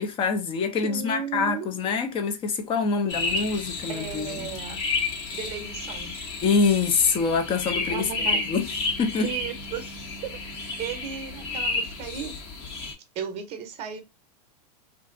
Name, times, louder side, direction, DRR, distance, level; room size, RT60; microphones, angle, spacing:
voice 1, 0.0-4.5 6.4-8.1 8.3-8.7 9.0-9.3, left 5 dB, 25° left, 0.6 m, -25 dB
voice 2, 0.8-1.7 3.9-4.8 5.3-6.1 7.9-8.5 9.2-9.8 10.2-10.4 10.8-12.4 13.1-14.0, right 7 dB, 30° right, 0.8 m, -34 dB
sound 1, 3.1-12.9, left 3 dB, 50° left, 1.3 m, -31 dB
2.5 x 2.4 x 3.7 m
supercardioid pair, 130°, 20 cm